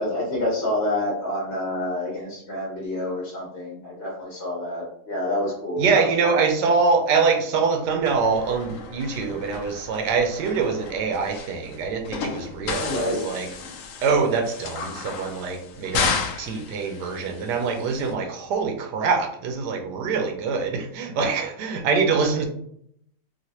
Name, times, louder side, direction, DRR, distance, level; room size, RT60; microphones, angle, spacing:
voice 1, 0.0-6.4 12.8-13.2, left 1 dB, 45° left, -5 dB, 1.0 m, -28 dB
voice 2, 5.8-13.5 14.0-22.4, right 5 dB, 75° right, 5 dB, 1.2 m, -24 dB
sound 1, 8.0-18.1, left 5 dB, 65° left, 0.8 m, -33 dB
3.1 x 2.9 x 2.8 m, 0.69 s
omnidirectional pair, 1.9 m